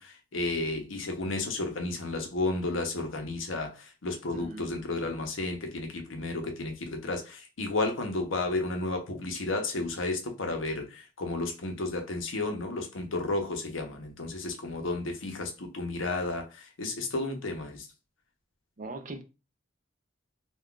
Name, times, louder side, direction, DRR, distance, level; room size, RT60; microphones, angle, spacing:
voice 1, 0.0-17.9, left 2 dB, 85° left, 0.8 m, -32 dB
voice 2, 4.3-4.7 18.8-19.2, right 2 dB, 40° right, 0.5 m, -40 dB
2.4 x 2.3 x 3.6 m
head